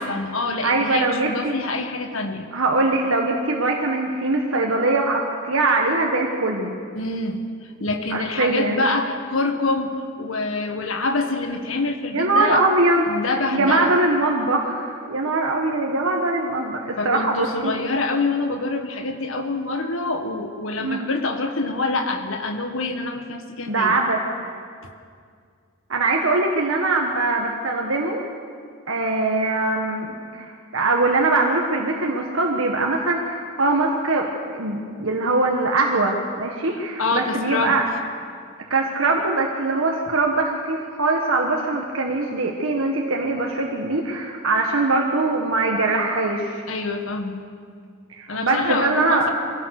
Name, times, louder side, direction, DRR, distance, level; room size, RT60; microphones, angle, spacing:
voice 1, 0.0-2.5 6.9-12.7 13.0-14.0 17.0-24.0 37.0-37.8 46.7-47.5 48.3-49.3, left 3 dB, 80° left, 5 dB, 1.5 m, -26 dB
voice 2, 0.6-1.5 2.5-6.7 8.1-8.8 12.1-13.1 13.5-17.7 20.8-21.1 23.7-24.2 25.9-28.2 28.9-34.3 34.5-37.8 38.7-46.6 48.2-49.3, right 2 dB, 85° right, 1 dB, 1.6 m, -22 dB
24.0 x 17.0 x 6.6 m, 2.2 s
head